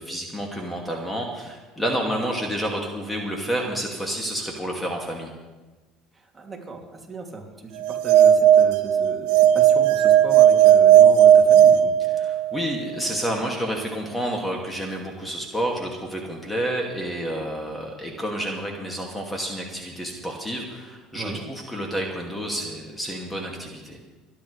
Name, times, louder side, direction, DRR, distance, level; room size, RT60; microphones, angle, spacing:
voice 1, 0.0-5.3 12.0-24.0, right 1 dB, 10° left, 0 dB, 2.5 m, -29 dB
voice 2, 6.3-11.9 21.1-21.4, right 3 dB, 20° right, 0 dB, 2.9 m, -36 dB
sound 1, 7.8-12.7, right 10 dB, 75° right, 0.8 m, -15 dB
27.0 x 10.5 x 3.4 m, 1.2 s
supercardioid pair, 85°, 0 cm